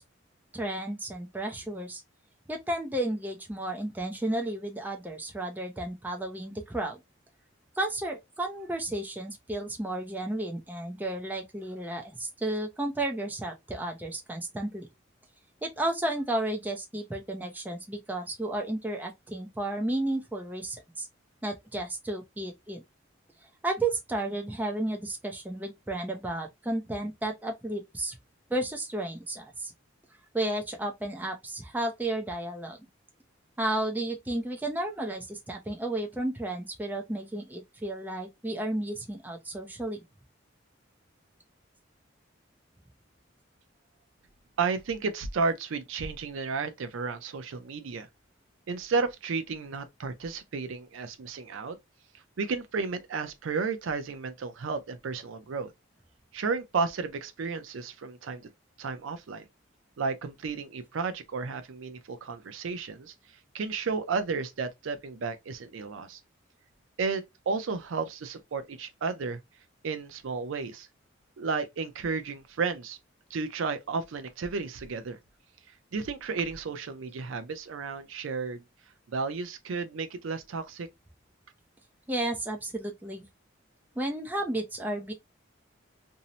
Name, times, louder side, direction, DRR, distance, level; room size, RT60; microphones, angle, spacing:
voice 1, 0.5-2.0 2.5-7.0 7.8-14.9 15.6-21.1 21.4-22.8 23.6-28.2 28.5-29.7 30.3-32.8 33.6-40.0 82.1-83.3 84.0-85.1, right 1 dB, 10° right, 0.4 m, -32 dB
voice 2, 44.6-48.1 48.7-51.8 52.4-55.7 56.3-58.5 58.8-59.4 60.0-63.1 63.5-66.2 67.0-69.4 69.8-70.9 71.4-73.0 73.3-75.2 75.9-78.6 79.1-80.9, right 4 dB, 80° right, 0.4 m, -32 dB
2.6 x 2.0 x 2.7 m
head